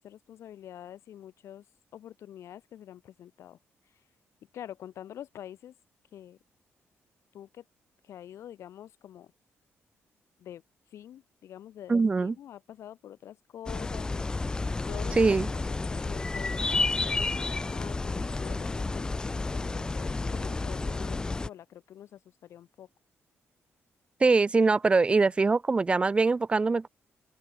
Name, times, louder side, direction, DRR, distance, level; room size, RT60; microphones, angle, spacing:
voice 1, 0.0-1.6 1.9-3.6 4.5-5.7 6.1-6.4 7.3-7.6 8.0-9.3 10.4-10.6 10.9-16.7 17.2-22.9, left 11 dB, 75° left, 4.2 m, -46 dB
voice 2, 11.9-12.3 15.1-15.5 24.2-26.9, right 4 dB, 20° right, 0.8 m, -23 dB
sound 1, 13.7-21.5, left 3 dB, 15° left, 0.5 m, -31 dB
open air
cardioid pair, 150°, 5 cm